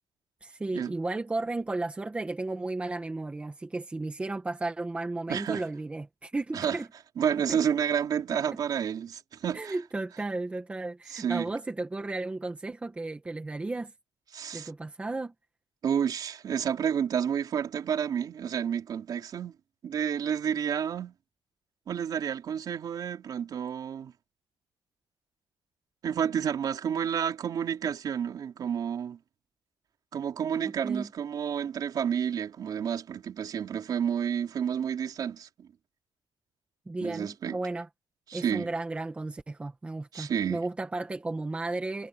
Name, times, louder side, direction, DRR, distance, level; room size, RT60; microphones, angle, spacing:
voice 1, 0.4-6.9 7.5-7.6 8.5-8.6 9.5-13.9 14.5-15.3 30.6-31.1 36.9-37.9 38.3-42.1, right 2 dB, 10° right, 1.9 m, -34 dB
voice 2, 5.3-5.6 6.5-6.8 7.2-9.7 11.1-11.5 14.3-14.7 15.8-19.5 19.8-21.1 21.9-24.1 26.0-29.2 30.1-35.7 37.0-37.6 38.3-38.7 40.1-40.6, right 8 dB, 45° right, 3.6 m, -30 dB
cardioid pair, 180°, 10 cm